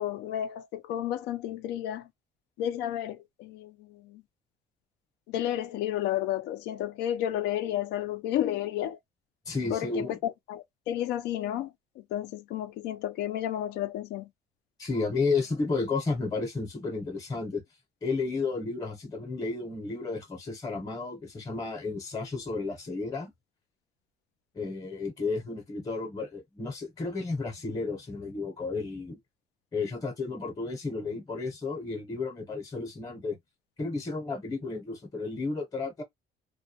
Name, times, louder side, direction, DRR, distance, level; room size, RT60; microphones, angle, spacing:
voice 1, 0.0-2.1 2.6-4.2 5.3-9.0 9.7-14.3, left 11 dB, 90° left, 0.5 m, -32 dB
voice 2, 9.5-10.2 14.8-17.6 18.0-23.3 24.5-29.2 29.7-33.4 33.8-36.0, left 3 dB, 20° left, 0.8 m, -32 dB
2.2 x 2.1 x 2.8 m
cardioid pair, 110°, 17 cm